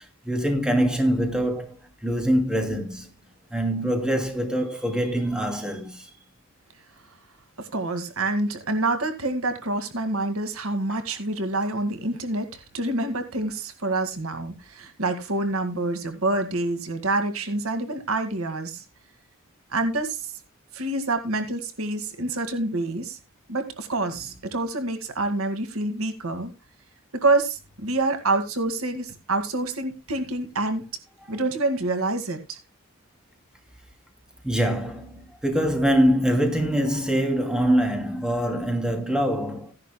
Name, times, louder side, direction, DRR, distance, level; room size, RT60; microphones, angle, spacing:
voice 1, 0.3-1.7 2.0-3.1 3.5-6.1 10.9-11.0 34.4-39.7, equal, 5° right, 2.6 m, -24 dB
voice 2, 7.6-18.8 19.7-20.3 20.7-23.2 23.5-26.5 27.1-30.9 31.3-32.6, right 2 dB, 80° right, 2.0 m, -27 dB
16.0 x 11.0 x 2.2 m
head